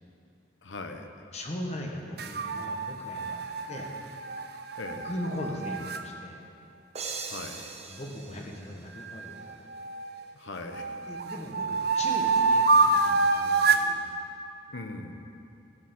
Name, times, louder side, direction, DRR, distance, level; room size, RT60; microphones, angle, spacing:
voice 1, 0.6-1.1 4.8-5.1 7.3-7.6 10.3-11.0 14.7-15.3, left 2 dB, 75° left, 6 dB, 0.9 m, -40 dB
voice 2, 1.3-3.4 3.7-3.9 5.0-6.4 7.9-9.6 11.1-14.0, left 1 dB, 35° left, 1 dB, 1.3 m, -39 dB
sound 1, 2.2-6.0 9.0-10.2 10.7-13.9, right 3 dB, 55° right, 0.6 m, -27 dB
sound 2, 6.9-9.6, right 4 dB, 35° right, 0.9 m, -41 dB
14.0 x 7.7 x 5.9 m, 2.7 s
head